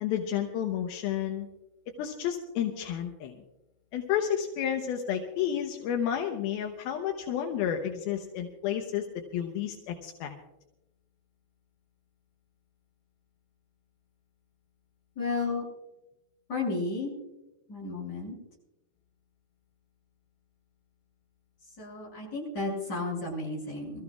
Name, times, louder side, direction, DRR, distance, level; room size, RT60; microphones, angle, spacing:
voice 1, 0.0-1.5 2.0-3.4 3.9-9.1 9.3-10.3, left 9 dB, 80° left, 3 dB, 2.8 m, -31 dB
voice 2, 15.2-15.6 16.5-17.1 17.7-18.4 21.6-24.0, left 3 dB, 25° left, -5 dB, 7.5 m, -33 dB
26.0 x 14.5 x 2.4 m, 0.94 s
omnidirectional pair, 4.3 m